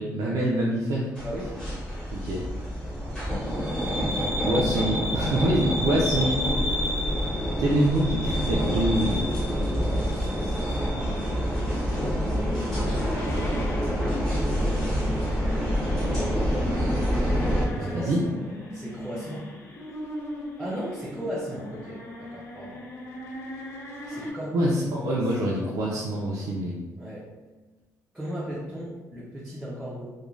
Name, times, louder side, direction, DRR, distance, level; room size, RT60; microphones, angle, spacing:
voice 1, 0.0-1.1 2.1-2.4 4.4-6.4 7.6-9.2 12.8-13.9 17.8-18.2 24.5-26.8, right 1 dB, 70° right, -5 dB, 0.4 m, -26 dB
sound 1, 1.2-17.6, equal, 10° left, 0.9 m, -27 dB
voice 2, 1.2-1.5 3.3-3.9 10.0-10.9 17.8-19.5 20.6-22.8 24.1-24.7 25.0-25.2 27.0-27.3 28.1-30.1, equal, 5° right, -8 dB, 0.5 m, -37 dB
sound 2, 12.5-24.3, left 1 dB, 50° left, 0.5 m, -39 dB
2.4 x 2.2 x 3.1 m, 1.3 s
cardioid pair, 155°, 6 cm